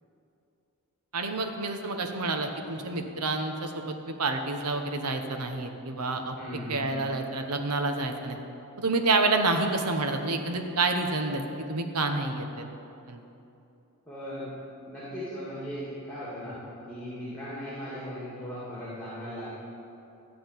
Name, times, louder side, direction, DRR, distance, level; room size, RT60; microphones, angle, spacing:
voice 1, 1.1-6.4 6.7-8.4 8.8-12.6 13.1-13.2, right 3 dB, 90° right, 5 dB, 1.1 m, -28 dB
voice 2, 6.4-7.0 14.1-14.5 14.9-16.6 16.9-19.5, equal, 5° left, -9 dB, 2.5 m, -38 dB
13.5 x 5.0 x 9.1 m, 2.9 s
head